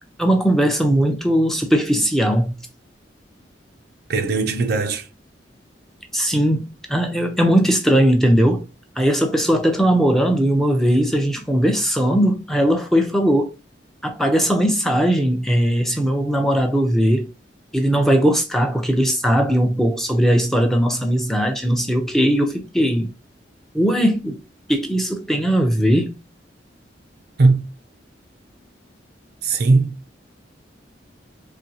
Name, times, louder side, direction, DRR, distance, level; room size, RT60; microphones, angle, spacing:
voice 1, 0.2-2.6 6.1-8.6 9.0-13.5 14.0-17.3 17.7-23.1 23.7-24.4 24.7-26.2, equal, ahead, 0.6 m, -19 dB
voice 2, 4.1-5.0 27.4-27.7 29.4-29.9, right 3 dB, 60° right, 0.5 m, -18 dB
4.2 x 2.8 x 2.7 m
head